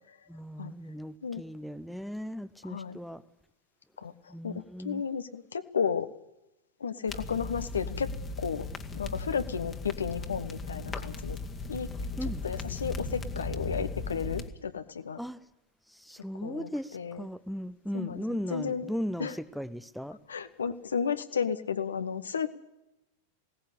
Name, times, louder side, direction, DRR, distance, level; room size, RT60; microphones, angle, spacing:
voice 1, 0.3-3.2 4.3-5.0 12.2-12.4 15.2-15.4 16.0-20.2, equal, ahead, 0.8 m, -37 dB
voice 2, 2.6-3.0 4.0-6.1 6.8-8.1 8.4-8.7 8.9-11.4 11.7-11.9 12.2-15.2 16.4-17.3 17.9-18.2 18.5-18.9 19.2-19.4 20.3-22.5, left 6 dB, 70° left, 1.1 m, -33 dB
sound 1, 7.1-14.5, left 3 dB, 20° left, 1.7 m, -37 dB
20.5 x 17.5 x 8.5 m
figure-of-eight pair, 90°, 0 cm